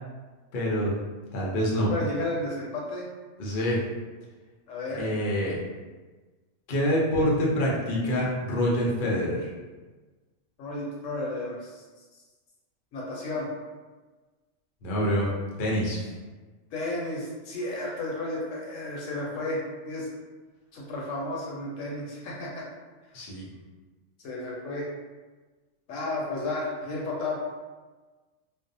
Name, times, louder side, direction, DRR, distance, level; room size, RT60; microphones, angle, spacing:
voice 1, 0.5-0.9 1.3-1.9 3.4-3.9 4.9-5.6 6.7-9.5 14.8-15.3 15.6-16.0 23.1-23.5, equal, 55° left, -4 dB, 0.6 m, -26 dB
voice 2, 1.9-3.0 4.7-5.1 10.6-11.8 12.9-13.5 16.7-20.1 20.7-22.6 24.2-24.9 25.9-27.4, left 2 dB, 75° left, -3 dB, 1.0 m, -32 dB
2.5 x 2.0 x 2.6 m, 1.3 s
omnidirectional pair, 1.4 m